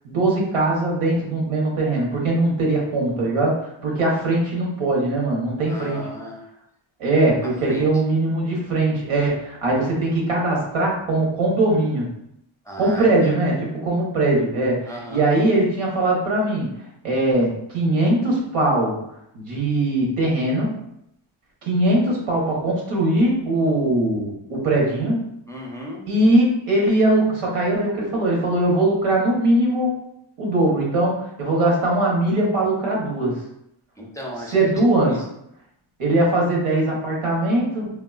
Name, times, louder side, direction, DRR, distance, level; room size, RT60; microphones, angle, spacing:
voice 1, 0.0-6.1 7.0-12.1 12.8-16.7 17.0-19.0 19.3-20.8 21.6-25.3 26.1-30.0 30.4-33.4 34.5-35.2 36.0-37.9, right 2 dB, 85° right, -2 dB, 1.0 m, -21 dB
voice 2, 5.7-6.4 7.4-7.9 12.6-13.3 14.9-15.2 25.5-26.0 34.0-34.7 35.0-35.2, equal, 5° left, -3 dB, 0.3 m, -35 dB
3.4 x 2.2 x 2.3 m, 0.78 s
wide cardioid pair, 155°, 50 cm